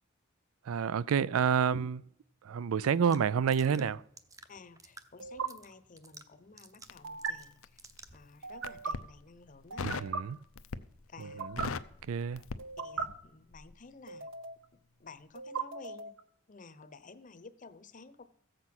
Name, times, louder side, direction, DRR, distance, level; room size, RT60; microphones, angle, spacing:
voice 1, 0.6-2.0 2.4-4.0 9.8-10.4 11.2-11.7 12.1-12.4, right 7 dB, 85° right, 0.4 m, -29 dB
sound 1, 1.5-1.8 3.6-3.9 5.2-5.5 7.0-7.3 8.4-8.9 9.7-10.2 11.2-11.7 12.6-13.1 14.1-14.7 15.4-16.2, right 5 dB, 65° right, 0.9 m, -38 dB
sound 2, 3.1-8.3, right 3 dB, 15° right, 0.7 m, -56 dB
voice 2, 4.5-7.8 8.1-10.1 11.1-11.4 12.8-14.3 15.0-16.1 16.5-18.2, left 4 dB, 40° left, 0.8 m, -53 dB
Crackle, 6.8-8.0 8.5-9.1 9.8-10.2 10.6-11.0 11.3-13.3 13.5-13.7, left 4 dB, 80° left, 0.6 m, -39 dB
14.5 x 7.8 x 6.0 m
head